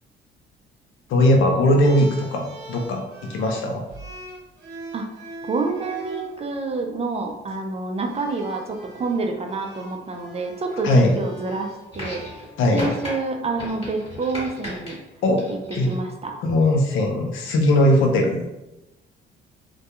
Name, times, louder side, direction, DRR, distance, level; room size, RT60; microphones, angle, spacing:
voice 1, 1.1-3.8 10.8-11.1 12.6-12.9 15.2-15.5 15.7-15.9 16.4-18.6, left 1 dB, 85° left, 2 dB, 0.5 m, -19 dB
sound 1, 1.8-6.3 7.3-7.5 8.0-12.9, right 1 dB, 70° right, 0.7 m, -42 dB
voice 2, 5.5-12.4 12.7-15.0 15.9-16.3, right 3 dB, 30° right, 3 dB, 0.4 m, -28 dB
sound 2, 11.9-12.5 12.8-13.1 13.6-14.9 15.4-16.0 17.1-17.2, equal, 30° left, 1.2 m, -35 dB
2.2 x 2.2 x 2.8 m, 0.96 s
cardioid pair, 90°, 20 cm